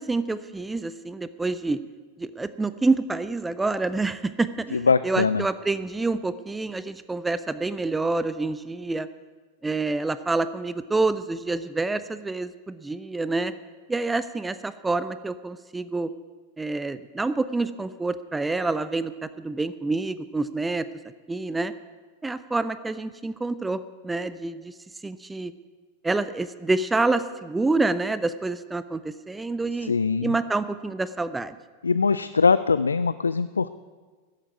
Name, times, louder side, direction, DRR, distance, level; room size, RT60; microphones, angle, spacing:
voice 1, 0.0-1.8 2.2-9.1 9.6-13.5 13.9-16.1 16.6-20.9 21.3-21.7 22.2-24.7 25.0-25.5 26.0-29.9 30.2-31.6, right 3 dB, 10° right, 14 dB, 0.5 m, -27 dB
voice 2, 4.7-5.4 29.8-30.4 31.8-33.7, left 5 dB, 75° left, 14 dB, 0.3 m, -22 dB
13.5 x 8.3 x 9.3 m, 1.4 s
figure-of-eight pair, 90°, 0 cm